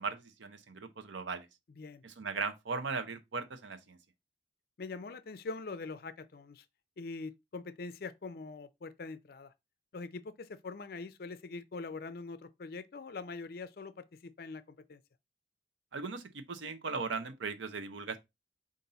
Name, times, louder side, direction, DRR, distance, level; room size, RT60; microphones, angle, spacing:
voice 1, 0.0-1.5 2.0-4.0 15.9-18.2, right 4 dB, 80° right, 0.7 m, -38 dB
voice 2, 4.8-6.7 7.0-9.5 9.9-14.6 14.9-15.0, left 3 dB, 50° left, 0.4 m, -43 dB
5.4 x 2.6 x 3.8 m
head